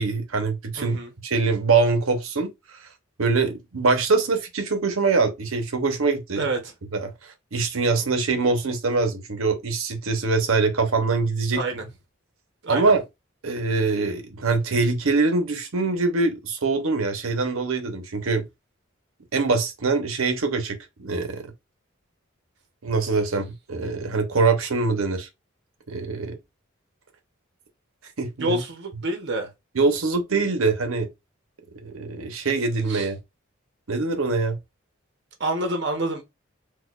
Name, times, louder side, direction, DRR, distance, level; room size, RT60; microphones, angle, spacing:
voice 1, 0.0-2.5 3.2-6.4 6.9-11.6 12.7-13.0 13.4-18.4 19.3-21.5 22.8-25.3 25.9-26.4 28.2-28.6 29.7-31.1 31.8-33.2 33.9-34.6, right 4 dB, 85° right, 0.8 m, -23 dB
voice 2, 0.8-1.1 6.4-6.7 11.5-11.9 12.6-12.9 28.4-29.5 32.9-33.1 35.4-36.2, right 2 dB, 55° right, 0.8 m, -28 dB
4.2 x 2.4 x 2.4 m
head